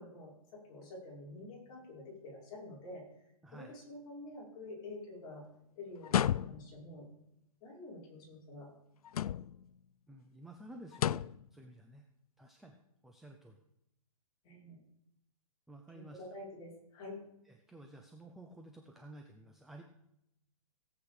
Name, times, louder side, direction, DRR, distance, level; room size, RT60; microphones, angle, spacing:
voice 1, 0.0-3.1 3.5-5.4 5.8-7.1 7.6-8.7 14.4-14.8 15.9-17.2, left 2 dB, 25° left, -5 dB, 5.3 m, -48 dB
voice 2, 3.4-3.8 10.1-12.1 12.4-12.8 13.0-13.6 15.7-16.2 17.5-19.8, right 1 dB, ahead, 3 dB, 0.5 m, -53 dB
sound 1, 6.0-6.9 9.0-9.7 10.9-11.5, left 10 dB, 80° left, 0.4 m, -32 dB
17.0 x 8.2 x 5.0 m, 0.80 s
hypercardioid pair, 160°, 19 cm